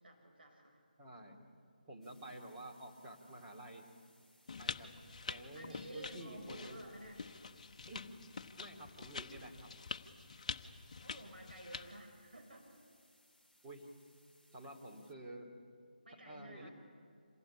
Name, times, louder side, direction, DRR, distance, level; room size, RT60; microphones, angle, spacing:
voice 1, 0.0-0.8 5.5-7.2 10.4-12.7 16.0-16.7, right 1 dB, 85° right, 1 dB, 6.3 m, -53 dB
voice 2, 1.0-1.5 1.8-3.9 4.6-4.9 5.3-6.8 7.9-8.0 8.6-9.7 13.6-13.9 14.5-15.5 16.2-16.7, right 1 dB, 15° right, -2 dB, 2.8 m, -50 dB
sound 1, 2.0-15.1, left 1 dB, ahead, 1.0 m, -70 dB
sound 2, 4.5-12.0, left 4 dB, 45° left, 0.9 m, -47 dB
26.5 x 17.5 x 9.8 m, 2.3 s
figure-of-eight pair, 160°, 5 cm